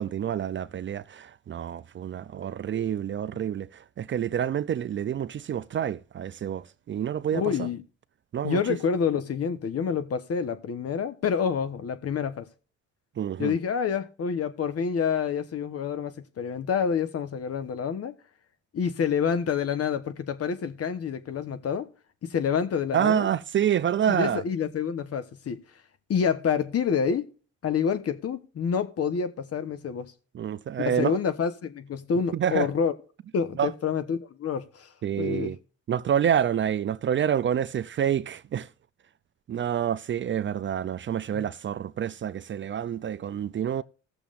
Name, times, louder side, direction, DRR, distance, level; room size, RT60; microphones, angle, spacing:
voice 1, 0.0-7.7 8.3-8.6 13.2-13.5 22.9-24.4 30.3-31.2 32.3-32.7 33.6-33.7 35.0-35.6 35.9-38.7 39.5-43.8, right 9 dB, 40° right, 0.4 m, -28 dB
voice 2, 7.3-7.8 8.4-12.5 13.4-18.1 18.7-21.9 22.2-23.3 24.1-25.6 26.1-27.3 27.6-30.1 30.8-32.9 33.3-34.9 35.2-35.5 41.3-41.4, left 7 dB, 50° left, 1.1 m, -28 dB
18.5 x 7.0 x 2.5 m
cardioid pair, 90°, 30 cm